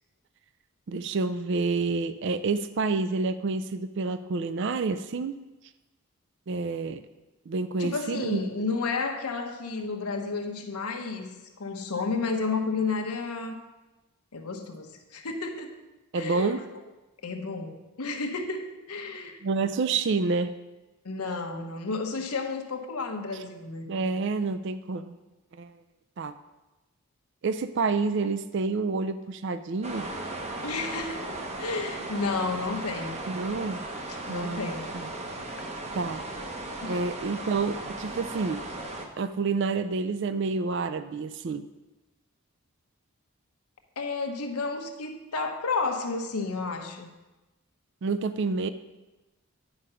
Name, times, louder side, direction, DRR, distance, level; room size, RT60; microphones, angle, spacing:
voice 1, 0.9-5.4 6.5-7.0 7.5-8.4 16.1-16.6 19.4-20.6 23.9-25.2 25.5-25.8 26.2-26.3 27.4-30.1 33.3-33.8 34.3-35.1 35.9-36.2 36.8-38.6 39.2-41.6 48.0-48.7, right 4 dB, 55° right, 12 dB, 0.4 m, -28 dB
voice 2, 7.8-13.6 14.3-15.8 16.1-16.6 17.2-19.4 21.0-23.9 30.6-33.2 34.1-34.9 36.8-37.0 44.0-47.1, left 4 dB, 85° left, 4 dB, 1.0 m, -32 dB
sound 1, 29.8-39.1, right 2 dB, 30° right, 0.8 m, -36 dB
10.0 x 4.9 x 5.6 m, 1.1 s
head